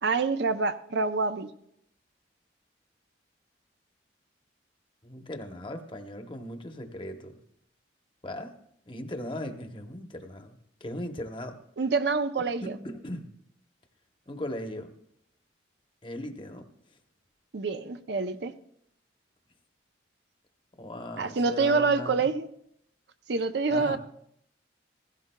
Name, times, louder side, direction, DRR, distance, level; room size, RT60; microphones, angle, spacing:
voice 1, 0.0-1.5 11.8-12.7 17.5-18.5 21.2-22.5 23.3-24.0, right 4 dB, 65° right, 10 dB, 0.5 m, -26 dB
voice 2, 5.0-7.4 8.2-8.5 8.8-11.6 12.6-13.3 14.3-14.9 16.0-16.7 20.8-22.3 23.7-24.0, left 1 dB, 25° left, 6 dB, 0.9 m, -38 dB
16.0 x 15.5 x 2.2 m, 0.72 s
head